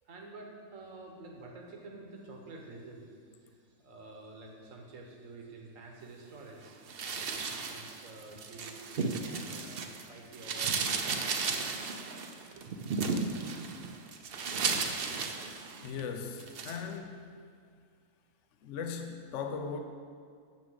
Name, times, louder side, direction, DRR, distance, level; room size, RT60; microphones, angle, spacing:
voice 1, 0.0-11.2 12.5-12.7, right 2 dB, 65° right, 1 dB, 1.6 m, -49 dB
sound 1, 6.9-10.0 10.3-16.0 16.4-16.8, right 4 dB, 50° right, 0.8 m, -34 dB
voice 2, 15.8-17.3 18.6-19.8, left 6 dB, 65° left, 5 dB, 1.0 m, -38 dB
7.2 x 6.5 x 7.8 m, 2.2 s
omnidirectional pair, 1.5 m